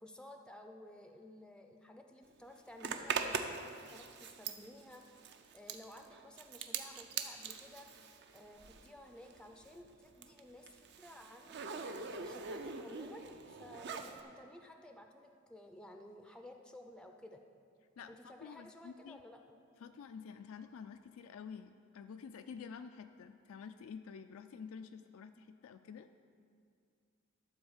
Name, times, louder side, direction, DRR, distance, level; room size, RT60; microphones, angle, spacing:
voice 1, 0.0-5.0 5.5-7.9 8.3-11.6 12.1-17.4 18.1-19.6, left 1 dB, 5° left, 4 dB, 0.4 m, -54 dB
Zipper (clothing), 2.8-9.0 9.3-14.2, right 5 dB, 55° right, 0.6 m, -42 dB
voice 2, 18.0-19.2 19.8-26.1, left 6 dB, 80° left, 8 dB, 0.3 m, -49 dB
12.0 x 4.3 x 7.2 m, 2.3 s
head